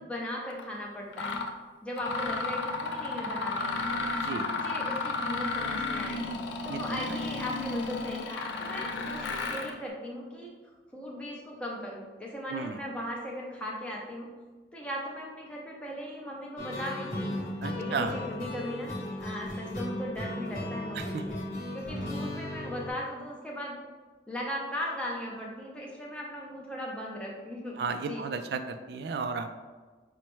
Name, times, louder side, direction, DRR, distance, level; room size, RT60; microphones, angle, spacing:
voice 1, 0.0-1.4 1.8-4.0 4.3-6.2 6.6-10.5 10.9-14.3 14.7-17.4 17.7-21.4 21.7-23.8 24.3-28.2, equal, 5° left, -3 dB, 0.6 m, -38 dB
Mechanisms, 0.5-0.6 1.1-1.5 2.0-9.8, left 3 dB, 80° left, 0.4 m, -33 dB
sound 1, 16.6-22.9, left 1 dB, 45° left, 0.9 m, -36 dB
voice 2, 17.6-18.2 20.9-21.3 27.8-29.6, right 5 dB, 65° right, 8 dB, 0.3 m, -33 dB
5.4 x 2.1 x 3.1 m, 1.4 s
head